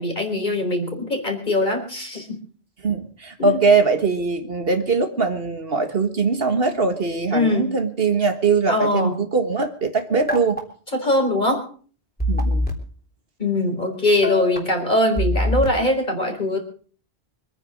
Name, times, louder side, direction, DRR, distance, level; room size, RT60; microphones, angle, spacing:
voice 1, 0.0-2.4 3.4-3.6 7.3-7.7 8.7-9.2 10.9-11.6 13.4-16.6, left 1 dB, 45° left, 4.3 m, -22 dB
voice 2, 2.8-10.6 12.3-12.7, right 4 dB, 60° right, 1.8 m, -21 dB
sound 1, 10.1-10.6 12.2-12.7 14.2-14.6 15.2-15.7, left 1 dB, 10° left, 3.4 m, -22 dB
25.0 x 9.8 x 5.2 m
omnidirectional pair, 1.1 m